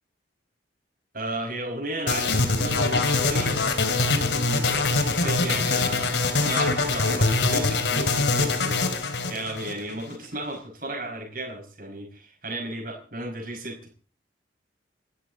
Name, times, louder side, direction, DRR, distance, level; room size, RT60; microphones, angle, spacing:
voice 1, 1.1-3.6 4.2-8.8 9.3-13.9, right 1 dB, 50° right, 0 dB, 5.3 m, -34 dB
sound 1, 2.1-10.1, left 3 dB, 70° left, 2.7 m, -24 dB
27.0 x 12.5 x 4.0 m, 0.38 s
head